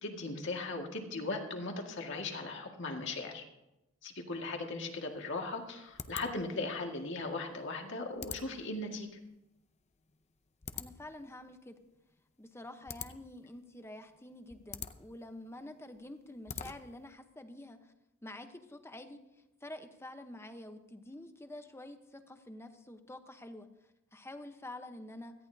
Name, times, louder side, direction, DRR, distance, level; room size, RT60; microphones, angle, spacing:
voice 1, 0.0-3.4 4.0-9.1, left 3 dB, 65° left, 2 dB, 2.0 m, -38 dB
sound 1, 4.9-17.1, left 7 dB, 35° left, 0.6 m, -48 dB
voice 2, 10.7-11.8 12.4-17.8 18.2-19.2 19.6-23.7 24.1-25.3, left 1 dB, 15° left, 7 dB, 1.0 m, -48 dB
17.5 x 13.5 x 2.8 m, 0.93 s
head